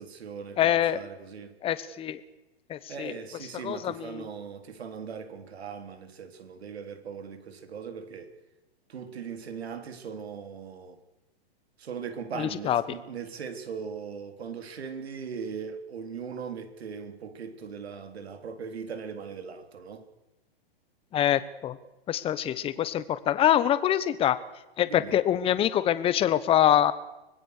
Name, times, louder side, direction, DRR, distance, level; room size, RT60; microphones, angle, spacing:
voice 1, 0.0-1.5 2.9-8.3 8.9-11.0 11.8-20.1 24.8-25.2, right 6 dB, 85° right, 3.7 m, -39 dB
voice 2, 0.6-1.0 1.6-2.2 2.7-3.1 3.6-4.2 12.4-12.8 21.1-21.8 22.1-24.4 24.8-26.9, left 11 dB, 20° left, 1.1 m, -25 dB
25.5 x 20.0 x 6.7 m
hypercardioid pair, 150°, 31 cm